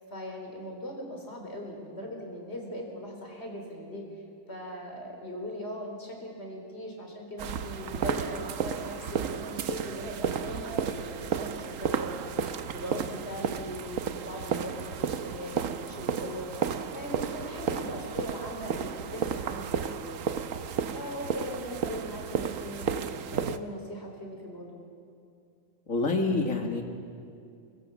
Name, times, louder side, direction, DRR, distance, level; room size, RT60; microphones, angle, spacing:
voice 1, 0.1-4.0 4.5-9.0 9.3-16.5 16.9-20.3 20.9-24.9, equal, 55° left, 1 dB, 4.3 m, -39 dB
sound 1, 7.4-23.6, right 7 dB, 90° right, 1.2 m, -33 dB
voice 2, 25.9-26.8, left 3 dB, 90° left, 3 dB, 2.6 m, -27 dB
24.5 x 21.5 x 7.0 m, 2.5 s
omnidirectional pair, 1.3 m